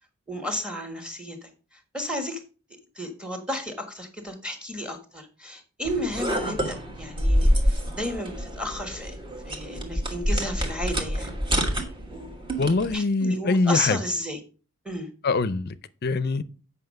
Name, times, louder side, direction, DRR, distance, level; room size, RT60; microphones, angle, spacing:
voice 1, 0.3-2.4 2.9-9.2 9.4-11.4 11.7-11.8 12.1-12.4 12.9-14.4 14.8-15.1, left 1 dB, 5° right, 1.4 m, -33 dB
sound 1, 5.8-13.0, equal, 20° right, 1.4 m, -27 dB
voice 2, 12.6-14.0 15.2-15.8 16.0-16.4, left 3 dB, 45° left, 0.5 m, -23 dB
8.1 x 5.6 x 5.3 m
head